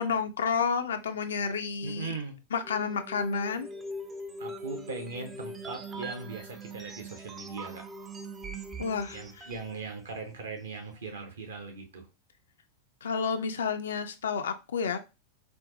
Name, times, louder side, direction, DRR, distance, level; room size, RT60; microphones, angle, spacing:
voice 1, 0.0-2.1 2.5-3.7 8.8-9.5 13.0-15.0, left 5 dB, 65° left, 8 dB, 0.4 m, -30 dB
voice 2, 1.8-2.4 4.4-7.8 9.1-12.1, right 4 dB, 65° right, 4 dB, 0.8 m, -39 dB
sound 1, 2.6-9.8, right 1 dB, 20° right, 0.4 m, -41 dB
4.3 x 2.0 x 2.7 m, 0.28 s
figure-of-eight pair, 90°, 0 cm